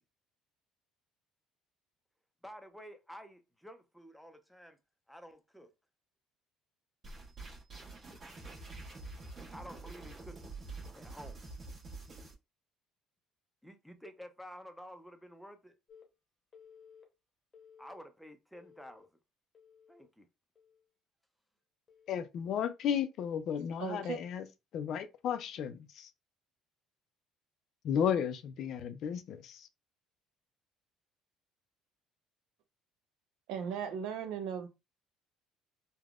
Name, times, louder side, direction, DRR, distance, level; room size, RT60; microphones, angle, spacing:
voice 1, 2.4-4.8 5.1-5.7 9.5-10.6 10.9-11.4 13.6-15.7 17.8-19.1 19.9-20.3, equal, ahead, 0.5 m, -51 dB
sound 1, 7.0-12.3, right 3 dB, 40° right, 1.2 m, -47 dB
Telephone, 15.9-16.0 16.5-17.0 17.5-18.0 18.5-19.0 19.5-20.1 20.5-20.9 21.9-22.1, left 7 dB, 25° left, 0.8 m, -58 dB
voice 2, 22.1-24.5 24.7-26.1 27.8-29.7, left 8 dB, 55° left, 0.4 m, -34 dB
voice 3, 23.8-24.2 33.5-34.7, right 7 dB, 75° right, 0.6 m, -37 dB
3.4 x 2.1 x 2.4 m
cardioid pair, 115°, 0 cm